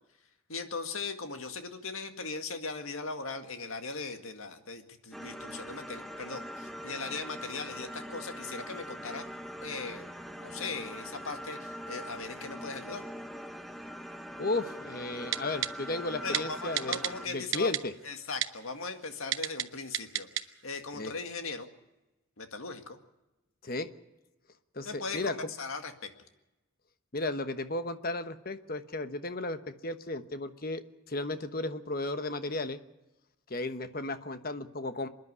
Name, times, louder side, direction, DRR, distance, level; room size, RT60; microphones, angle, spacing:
voice 1, 0.5-9.3 9.6-13.0 16.2-17.7 18.0-21.7 22.4-23.0 24.8-26.1, left 4 dB, 85° left, 7 dB, 1.9 m, -39 dB
sound 1, 5.1-17.3, equal, ahead, 0.8 m, -42 dB
voice 2, 14.4-17.0 17.3-17.9 20.9-21.1 23.6-23.9 24.7-25.3 27.1-30.8 31.1-32.8 33.5-35.1, left 2 dB, 45° left, 10 dB, 1.1 m, -34 dB
Typing, 15.3-15.7 16.3-16.4 16.8-17.1 17.5-17.8 18.4-18.5 19.3-19.6 19.9-20.4 20.8-20.9, right 12 dB, 65° right, 0.8 m, -29 dB
26.5 x 10.5 x 9.6 m, 1.0 s
head